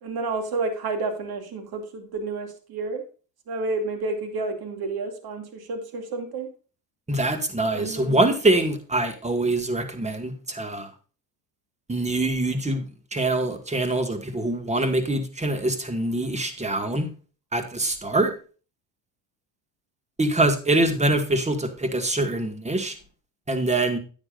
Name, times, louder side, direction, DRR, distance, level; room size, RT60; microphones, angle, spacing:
voice 1, 0.0-3.0 3.5-6.5 7.7-8.2, right 3 dB, 50° right, 6 dB, 2.5 m, -30 dB
voice 2, 7.1-10.9 11.9-12.8 13.1-17.1 17.5-18.3 20.2-23.0 23.5-24.0, right 2 dB, 15° right, 7 dB, 1.9 m, -24 dB
9.8 x 9.7 x 2.5 m, 0.36 s
hypercardioid pair, 80°, 49 cm